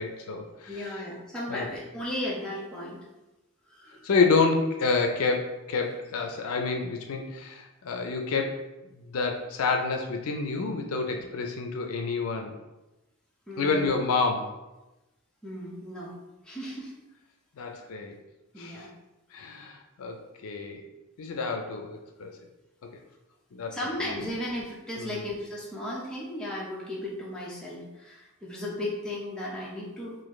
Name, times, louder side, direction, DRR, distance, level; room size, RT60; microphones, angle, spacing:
voice 1, 0.0-1.0 1.5-1.7 4.0-8.6 9.0-12.5 13.6-14.5 17.6-18.2 18.6-18.9 19.3-20.8 21.2-22.4 23.5-24.2 25.0-25.2, left 4 dB, 75° left, 3 dB, 0.4 m, -28 dB
voice 2, 0.7-3.0 3.7-4.1 13.5-13.9 15.4-16.2 16.4-16.9 18.5-18.9 23.7-30.2, left 1 dB, 5° left, -6 dB, 0.7 m, -35 dB
4.0 x 2.6 x 3.1 m, 1.0 s
head